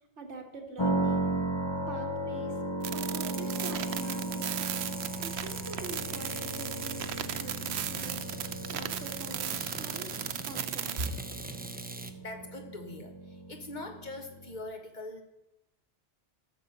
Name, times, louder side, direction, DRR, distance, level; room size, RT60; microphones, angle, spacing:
voice 1, 0.2-1.3 1.9-2.6 2.9-8.3 8.7-10.1 10.4-11.0, right 2 dB, 85° right, 3 dB, 2.0 m, -44 dB
sound 1, 0.8-14.6, right 2 dB, 25° left, 0.9 m, -36 dB
sound 2, 2.8-11.1, right 10 dB, 70° right, 0.9 m, -36 dB
sound 3, 3.2-12.1, right 2 dB, 10° right, 0.4 m, -43 dB
voice 2, 12.2-15.2, left 2 dB, 40° left, 5 dB, 1.3 m, -42 dB
12.0 x 6.9 x 6.7 m, 0.91 s
omnidirectional pair, 1.2 m